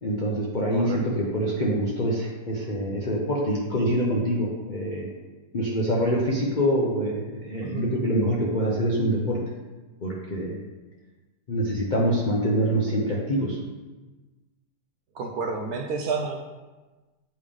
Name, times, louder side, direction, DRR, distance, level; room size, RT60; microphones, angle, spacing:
voice 1, 0.0-5.1 5.5-9.4 10.0-10.6 11.5-13.6, equal, 60° left, -3 dB, 0.5 m, -25 dB
voice 2, 15.1-16.4, right 4 dB, 70° right, 3 dB, 0.9 m, -30 dB
8.3 x 3.3 x 3.5 m, 1.2 s
omnidirectional pair, 1.9 m